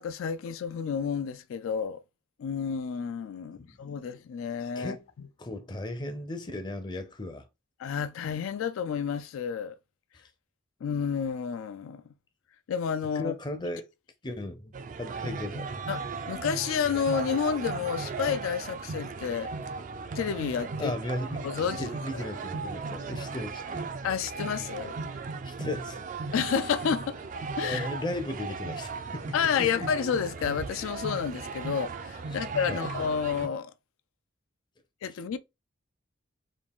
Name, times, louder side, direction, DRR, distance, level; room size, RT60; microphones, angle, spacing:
voice 1, 0.0-2.0 2.4-5.0 7.8-9.8 10.8-12.0 12.7-13.3 15.9-16.0 16.3-19.5 20.2-20.9 21.4-22.3 24.0-24.9 26.3-27.2 27.6-27.9 29.3-33.7 35.0-35.4, left 7 dB, 85° left, 0.3 m, -30 dB
voice 2, 4.8-5.1 5.4-7.5 13.2-13.9 14.2-14.7 15.0-15.7 20.8-23.9 25.4-26.0 27.6-29.9 32.3-32.9, left 1 dB, 20° left, 0.5 m, -36 dB
sound 1, 14.7-33.5, right 4 dB, 40° right, 0.3 m, -37 dB
3.6 x 2.4 x 3.5 m
head